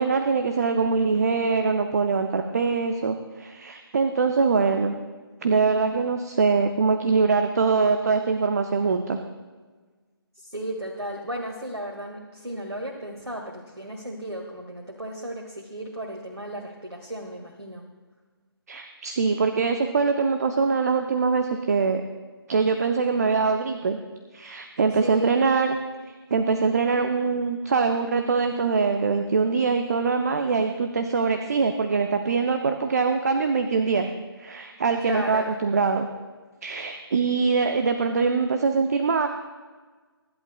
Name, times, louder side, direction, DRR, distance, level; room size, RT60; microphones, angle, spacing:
voice 1, 0.0-4.9 5.4-9.2 18.7-22.0 22.5-24.0 24.3-25.8 26.3-34.1 34.4-36.1 36.6-39.3, right 4 dB, 40° right, 6 dB, 0.7 m, -23 dB
voice 2, 1.0-1.3 10.4-17.8 24.9-25.4 35.0-35.6, equal, 85° right, 0 dB, 1.8 m, -34 dB
23.5 x 11.0 x 2.2 m, 1.4 s
figure-of-eight pair, 150°, 13 cm